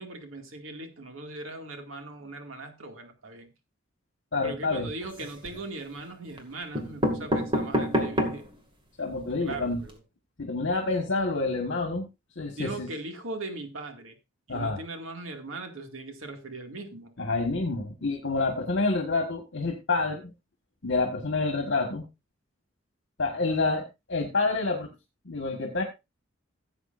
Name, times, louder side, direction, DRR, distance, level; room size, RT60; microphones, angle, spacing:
voice 1, 0.0-3.5 4.4-8.5 9.4-10.0 12.5-14.2 14.5-17.1 23.3-23.6, right 2 dB, 85° right, 5 dB, 2.2 m, -39 dB
voice 2, 4.3-4.9 9.0-9.8 10.4-12.1 12.3-12.9 14.5-14.8 17.2-20.2 20.8-22.0 23.2-23.8 24.1-24.9 25.2-25.8, left 3 dB, 65° left, 3 dB, 1.6 m, -28 dB
sound 1, 5.0-5.6 6.4-6.5 6.7-8.5 9.0-9.1 9.3-9.4 9.7-9.9, equal, 25° right, 2.1 m, -28 dB
16.0 x 8.1 x 2.6 m, 0.25 s
head